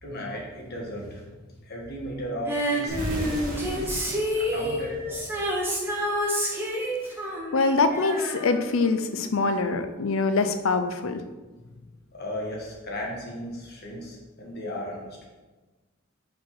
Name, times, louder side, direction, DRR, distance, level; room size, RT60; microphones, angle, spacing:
voice 1, 0.0-3.9 4.3-5.2 5.9-6.0 12.1-15.3, equal, 50° left, -2 dB, 1.6 m, -36 dB
Female singing, 2.5-9.1 9.4-9.5, equal, 10° right, 1.1 m, -29 dB
sound 1, 2.9-5.7, equal, 40° right, 1.6 m, -35 dB
voice 2, 7.5-11.2, left 3 dB, 85° left, 9 dB, 0.6 m, -24 dB
5.1 x 4.5 x 5.7 m, 1.2 s
head